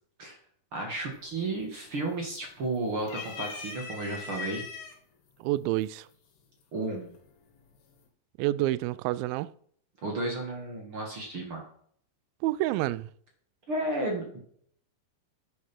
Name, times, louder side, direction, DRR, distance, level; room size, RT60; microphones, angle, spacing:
voice 1, 0.7-4.6 6.7-7.1 10.0-11.6 13.7-14.4, right 2 dB, 45° right, 2.0 m, -33 dB
sound 1, 1.2-1.6 1.9-2.6 3.0-4.9 5.8-5.9 7.1-7.6, left 5 dB, 75° left, 4.1 m, -40 dB
voice 2, 5.4-6.1 8.4-9.5 12.4-13.1, right 16 dB, 90° right, 2.0 m, -28 dB
10.5 x 7.3 x 6.1 m
omnidirectional pair, 4.7 m